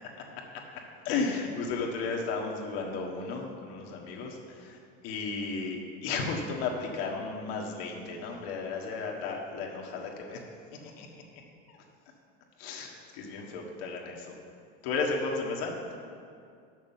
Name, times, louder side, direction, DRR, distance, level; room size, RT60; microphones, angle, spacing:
voice 1, 1.0-4.8 5.0-10.4 11.0-11.1 12.6-14.3 14.8-16.0, left 4 dB, 75° left, 0 dB, 1.5 m, -34 dB
6.6 x 6.3 x 7.2 m, 2.3 s
supercardioid pair, 130°, 31 cm